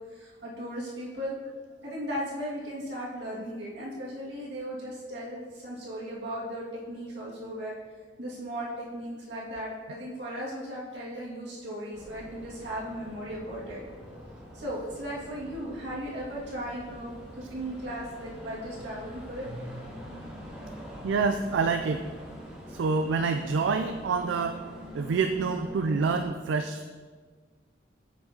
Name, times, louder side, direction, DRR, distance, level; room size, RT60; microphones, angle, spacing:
voice 1, 0.0-1.3 1.8-7.7 8.2-13.8 14.5-19.5, equal, 70° right, -6 dB, 1.9 m, -37 dB
sound 1, 11.9-26.2, equal, 5° right, 1.3 m, -44 dB
voice 2, 21.0-22.1 22.7-24.6 24.9-26.8, right 4 dB, 85° right, 7 dB, 0.3 m, -27 dB
8.6 x 6.1 x 2.8 m, 1.5 s
head